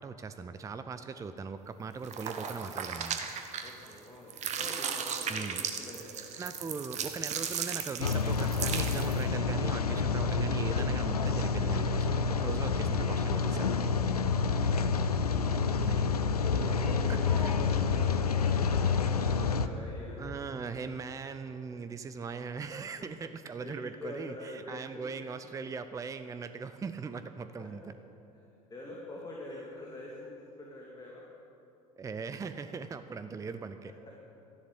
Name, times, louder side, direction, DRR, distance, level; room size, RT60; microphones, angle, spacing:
voice 1, 0.0-3.2 5.3-5.6 6.4-13.7 15.8-16.0 17.1-17.5 20.2-27.9 32.0-33.9, right 5 dB, 15° right, 10 dB, 0.6 m, -39 dB
sound 1, 2.0-4.0 4.3-9.2, right 7 dB, 35° right, 1.4 m, -36 dB
voice 2, 3.6-6.4 15.6-20.4 23.6-25.1 27.6-27.7 28.7-31.2, left 1 dB, 20° left, -3 dB, 2.6 m, -45 dB
Rain, 8.0-19.7, left 5 dB, 80° left, 0.6 m, -28 dB
13.5 x 11.5 x 8.4 m, 2.8 s
figure-of-eight pair, 65°, 19 cm